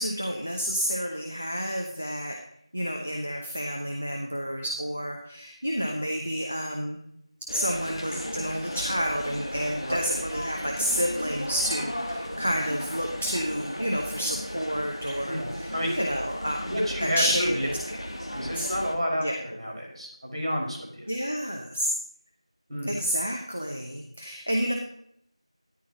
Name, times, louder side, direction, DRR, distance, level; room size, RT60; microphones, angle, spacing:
voice 1, 0.0-2.4 2.7-7.0 7.5-17.6 17.9-18.2 18.5-18.7 19.2-19.4 21.1-21.9 22.8-24.7, equal, 15° left, 2 dB, 0.4 m, -30 dB
sound 1, 7.5-18.9, equal, 65° left, 2.4 m, -36 dB
sound 2, 7.7-18.7, equal, 50° left, 2.6 m, -43 dB
voice 2, 15.2-16.0 16.6-17.7 18.3-21.0 22.7-22.9, equal, ahead, -23 dB, 2.4 m, -30 dB
13.0 x 10.5 x 2.9 m, 0.72 s
figure-of-eight pair, 180°, 3 cm